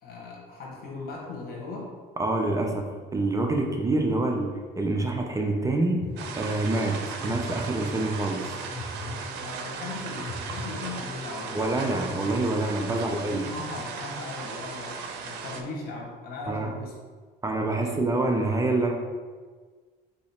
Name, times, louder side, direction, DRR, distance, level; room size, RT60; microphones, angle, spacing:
voice 1, 0.0-1.9 9.3-12.0 12.9-16.9, left 3 dB, 65° left, -1 dB, 1.2 m, -38 dB
voice 2, 2.2-2.9 3.1-6.0 6.4-8.6 11.5-13.5 16.5-16.7 17.4-18.9, right 2 dB, 20° right, 2 dB, 0.5 m, -26 dB
sound 1, 6.0-11.3, left 3 dB, 35° left, 0.7 m, -41 dB
sound 2, 6.2-15.6, right 5 dB, 85° right, 0.5 m, -37 dB
4.0 x 2.8 x 4.3 m, 1.5 s
cardioid pair, 110°, 17 cm